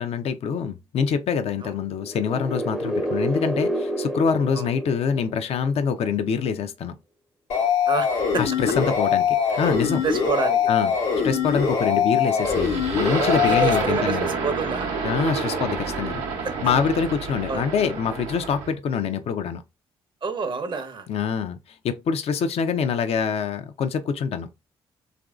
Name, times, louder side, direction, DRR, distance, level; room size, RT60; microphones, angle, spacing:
voice 1, 0.0-7.0 8.4-10.0 10.7-10.9 11.2-14.3 15.0-16.2 16.6-19.6 21.1-21.6 21.8-24.5, left 6 dB, 60° left, 0.5 m, -25 dB
sound 1, 2.0-5.8, right 1 dB, 5° right, 0.5 m, -29 dB
sound 2, 7.5-13.8, left 7 dB, 85° left, 1.0 m, -22 dB
voice 2, 7.9-8.4 9.6-9.7 10.0-10.7 13.3-14.9 16.4-16.6 17.5-17.6 20.2-21.1, right 5 dB, 45° right, 0.7 m, -28 dB
sound 3, 12.4-18.7, right 5 dB, 80° right, 0.7 m, -29 dB
2.9 x 2.5 x 2.3 m
hypercardioid pair, 45°, 12 cm